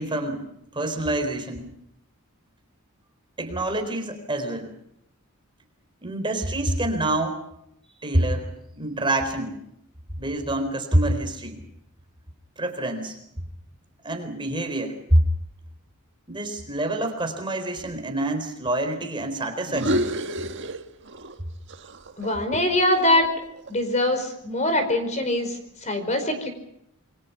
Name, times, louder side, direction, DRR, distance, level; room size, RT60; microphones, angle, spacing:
voice 1, 0.0-1.7 3.4-4.7 6.0-7.4 8.0-8.5 8.7-9.6 10.2-11.6 12.6-13.2 14.0-15.2 16.3-20.0, right 1 dB, 20° right, 5 dB, 4.2 m, -26 dB
sound 1, 19.6-21.4 21.7-23.9, right 1 dB, 55° right, 1.7 m, -30 dB
voice 2, 22.2-23.3 23.7-26.5, left 1 dB, 30° left, 8 dB, 4.9 m, -23 dB
28.0 x 24.0 x 5.8 m, 0.77 s
head